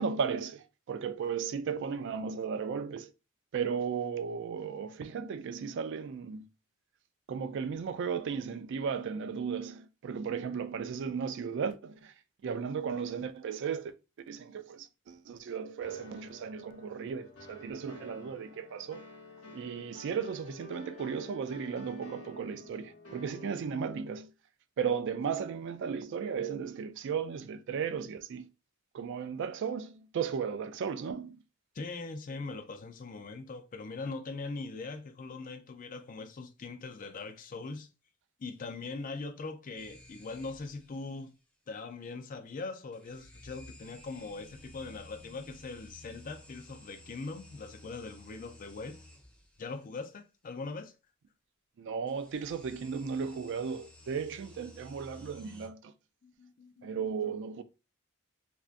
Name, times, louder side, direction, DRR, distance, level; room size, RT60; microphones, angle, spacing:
voice 1, 0.0-3.1 3.5-6.5 7.3-12.1 12.4-13.9 14.3-19.0 19.5-24.3 24.8-28.5 28.9-31.4 51.8-55.9 56.8-57.6, right 6 dB, 55° right, 0.3 m, -35 dB
sound 1, 15.8-24.1, left 2 dB, 85° left, 1.1 m, -50 dB
voice 2, 31.7-37.9 38.4-41.3 41.7-49.0 49.6-50.9 56.2-56.9, left 3 dB, 40° left, 0.4 m, -41 dB
sound 2, 39.8-41.0 42.9-49.6 52.1-55.7, left 1 dB, 5° left, 0.7 m, -54 dB
3.3 x 2.6 x 2.5 m
head